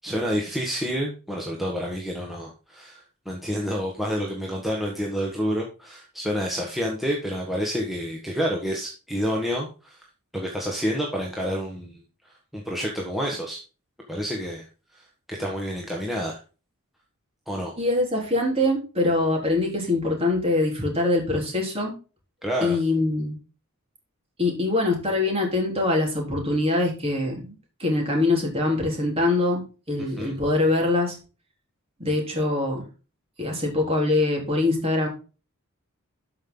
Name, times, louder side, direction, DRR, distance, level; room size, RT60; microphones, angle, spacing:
voice 1, 0.0-10.0 10.3-12.0 12.5-13.6 14.1-14.7 15.3-16.4 17.5-17.7 22.4-22.8 30.2-30.4, equal, ahead, -2 dB, 1.6 m, -28 dB
voice 2, 17.8-21.9 22.6-23.4 24.4-27.5 27.8-31.2 32.0-32.8 33.4-35.1, left 2 dB, 25° right, 0 dB, 3.8 m, -23 dB
13.0 x 5.7 x 3.9 m, 0.33 s
head